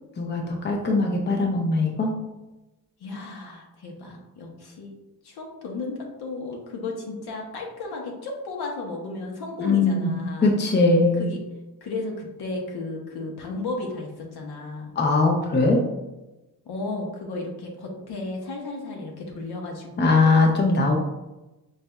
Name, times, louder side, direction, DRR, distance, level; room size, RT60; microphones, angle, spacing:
voice 1, 0.2-2.1 9.6-10.1 10.4-11.3 15.0-15.8 20.0-20.9, left 3 dB, 30° left, 1 dB, 0.6 m, -20 dB
voice 2, 3.0-4.9 5.2-10.6 11.2-11.4 11.8-14.9 16.6-20.5, left 3 dB, 85° left, 0 dB, 1.0 m, -34 dB
5.3 x 3.2 x 2.3 m, 1.0 s
wide cardioid pair, 160°, 38 cm